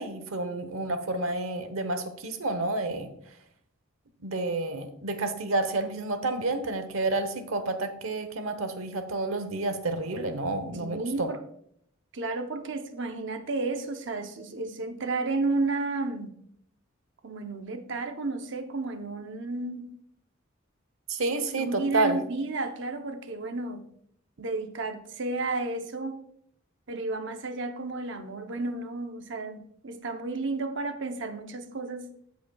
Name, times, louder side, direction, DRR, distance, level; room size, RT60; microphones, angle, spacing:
voice 1, 0.0-3.1 4.2-11.3 21.1-22.2, right 2 dB, 85° right, 8 dB, 1.0 m, -30 dB
voice 2, 10.8-11.4 12.1-16.3 17.2-19.9 21.6-23.8 24.4-26.2 26.9-32.3, right 3 dB, 60° right, 6 dB, 0.7 m, -32 dB
15.0 x 5.2 x 2.3 m, 0.69 s
head